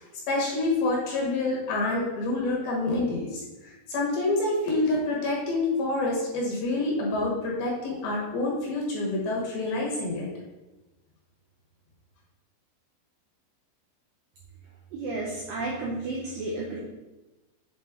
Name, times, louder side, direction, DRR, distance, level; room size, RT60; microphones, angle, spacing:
voice 1, 0.3-10.3, left 2 dB, 70° left, -3 dB, 2.7 m, -27 dB
voice 2, 14.9-16.8, right 2 dB, 80° right, -4 dB, 2.1 m, -32 dB
7.9 x 3.8 x 3.6 m, 1.1 s
omnidirectional pair, 5.0 m